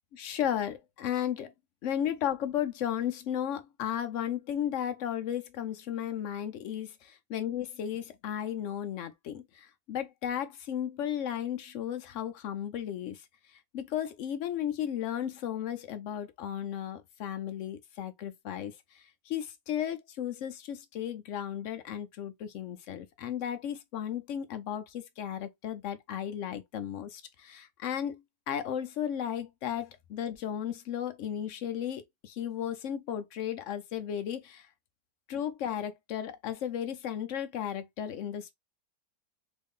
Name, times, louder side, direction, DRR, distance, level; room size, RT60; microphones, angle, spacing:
voice 1, 0.1-1.5 1.8-34.7 35.3-38.5, left 10 dB, 70° left, 0.8 m, -35 dB
3.1 x 2.5 x 3.5 m
omnidirectional pair, 1.6 m